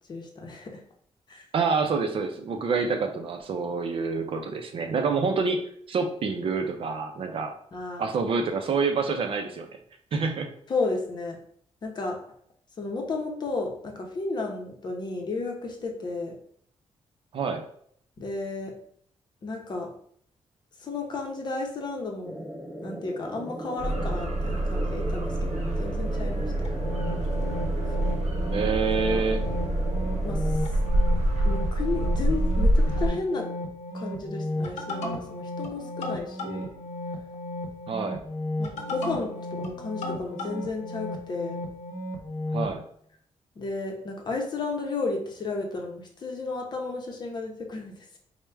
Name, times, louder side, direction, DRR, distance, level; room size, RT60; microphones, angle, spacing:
voice 1, 0.1-0.8 1.3-1.4 7.7-8.1 10.7-11.4 11.8-12.2 12.8-16.4 18.2-18.7 19.4-19.9 20.8-22.3 22.8-26.5 29.1-29.3 30.2-30.4 31.4-33.5 33.9-36.7 38.6-41.6 43.6-48.2, left 3 dB, 40° left, 1 dB, 0.7 m, -33 dB
voice 2, 1.5-5.6 5.9-7.6 8.0-9.8 10.1-10.5 17.3-17.6 28.5-29.5 37.9-38.2 42.5-42.8, right 4 dB, 55° right, 5 dB, 0.5 m, -27 dB
sound 1, 22.2-30.5, equal, 10° right, 0.8 m, -37 dB
sound 2, 23.8-33.1, right 1 dB, 80° right, 0.8 m, -26 dB
sound 3, 26.6-42.7, left 1 dB, 85° left, 0.7 m, -34 dB
4.6 x 2.1 x 3.4 m, 0.63 s
wide cardioid pair, 165°, 11 cm